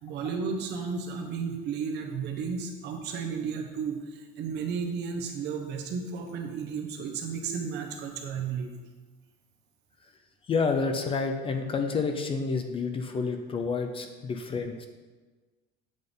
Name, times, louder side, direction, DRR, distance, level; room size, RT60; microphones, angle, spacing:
voice 1, 0.0-8.7, right 6 dB, 55° right, 4 dB, 0.9 m, -33 dB
voice 2, 10.5-14.9, left 4 dB, 25° left, 6 dB, 0.4 m, -29 dB
7.7 x 3.6 x 3.8 m, 1.3 s
cardioid pair, 140°, 21 cm